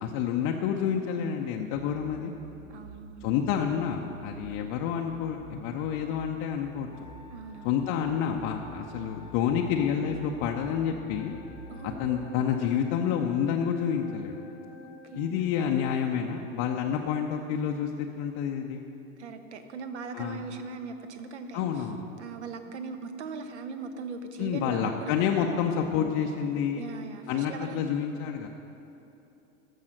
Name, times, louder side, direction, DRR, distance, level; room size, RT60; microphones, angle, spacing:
voice 1, 0.0-2.3 3.2-7.1 7.6-11.4 11.8-14.3 15.1-18.8 20.1-20.4 21.5-22.0 24.4-26.8 27.3-28.5, left 8 dB, 35° left, 1 dB, 0.6 m, -29 dB
sound 1, 1.7-12.3, right 2 dB, 35° right, 0.9 m, -49 dB
voice 2, 2.7-3.3 7.3-7.8 11.7-12.5 15.0-15.4 19.2-21.7 22.2-25.1 26.8-27.9, right 4 dB, 60° right, 9 dB, 0.9 m, -40 dB
Wind instrument woodwind instrument, 6.9-11.9, left 2 dB, 10° right, 1.2 m, -54 dB
sound 2, 11.2-15.3, left 2 dB, 55° left, 1.0 m, -50 dB
14.0 x 5.6 x 6.3 m, 2.9 s
figure-of-eight pair, 85°, 40 cm